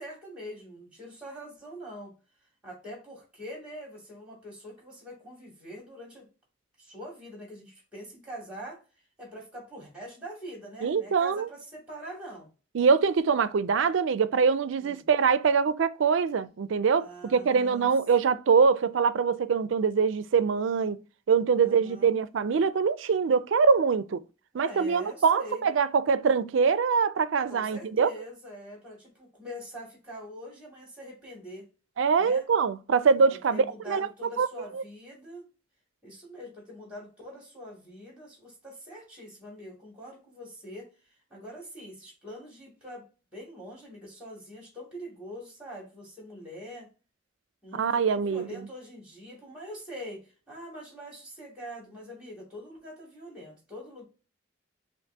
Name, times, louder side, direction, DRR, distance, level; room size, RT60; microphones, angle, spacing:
voice 1, 0.0-2.1 2.6-6.3 6.8-8.8 9.2-12.5 14.8-15.1 17.0-17.9 21.6-22.2 24.5-25.7 27.5-31.7 32.2-32.4 33.5-35.5 36.0-40.9 41.3-46.9 47.6-54.0, equal, 5° right, 2.4 m, -44 dB
voice 2, 10.8-11.5 12.7-21.0 21.3-24.2 24.5-28.1 32.0-34.1 34.4-34.5 34.7-34.8 47.8-48.4, right 5 dB, 70° right, 0.4 m, -24 dB
5.9 x 2.5 x 2.7 m
head